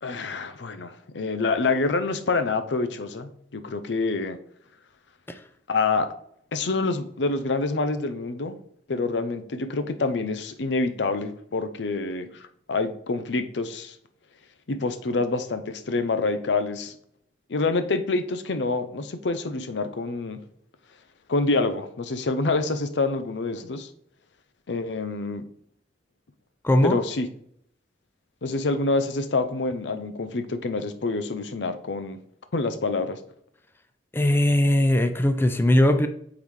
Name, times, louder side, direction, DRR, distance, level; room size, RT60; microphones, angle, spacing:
voice 1, 0.0-4.4 5.7-6.1 6.5-8.6 8.9-14.0 14.7-17.0 17.5-20.4 21.3-23.9 24.7-25.4 26.8-27.3 28.4-32.2 32.5-33.2, left 3 dB, 90° left, 9 dB, 0.6 m, -27 dB
voice 2, 26.6-27.0 34.1-36.1, left 1 dB, 15° left, 8 dB, 0.4 m, -20 dB
8.7 x 4.0 x 3.2 m, 0.68 s
head